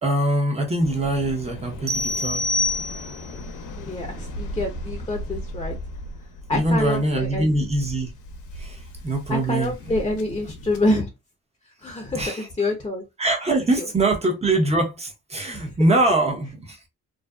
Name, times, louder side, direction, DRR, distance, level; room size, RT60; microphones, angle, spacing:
voice 1, 0.0-2.4 6.5-8.1 8.5-9.7 12.1-12.5 13.2-16.8, right 2 dB, 20° right, 0.9 m, -23 dB
Waves surf, 0.8-11.0, equal, 80° left, 0.7 m, -37 dB
sound 1, 1.9-3.4, left 2 dB, 50° right, 0.6 m, -26 dB
voice 2, 3.7-5.8 6.5-7.5 9.3-11.1 11.8-13.0 13.8-13.9 15.5-15.7, left 2 dB, 15° left, 0.7 m, -27 dB
2.5 x 2.2 x 2.3 m
cardioid pair, 90°, 30 cm